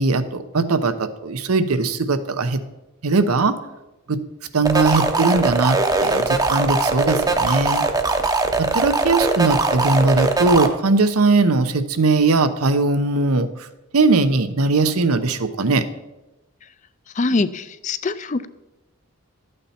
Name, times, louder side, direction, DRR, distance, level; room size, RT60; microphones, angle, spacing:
voice 1, 0.0-2.6 3.0-3.6 4.1-4.2 4.5-7.9 8.6-13.7 13.9-15.8, right 3 dB, 90° right, 11 dB, 0.8 m, -19 dB
sound 1, 4.6-10.7, right 3 dB, 15° right, 0.7 m, -20 dB
voice 2, 17.2-18.5, left 3 dB, 35° left, 14 dB, 0.4 m, -23 dB
12.5 x 8.7 x 4.3 m, 0.99 s
head